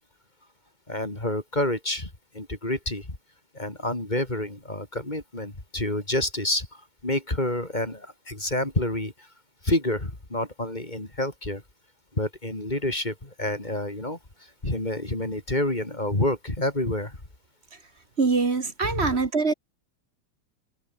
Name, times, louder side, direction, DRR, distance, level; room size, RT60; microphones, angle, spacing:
voice 1, 0.9-2.1 2.3-3.1 3.6-6.7 7.0-9.1 9.6-11.6 12.2-14.2 14.6-17.2 18.9-19.1, left 1 dB, 20° left, 3.7 m, -28 dB
voice 2, 18.2-19.5, right 4 dB, 35° right, 1.7 m, -23 dB
omnidirectional pair, 2.2 m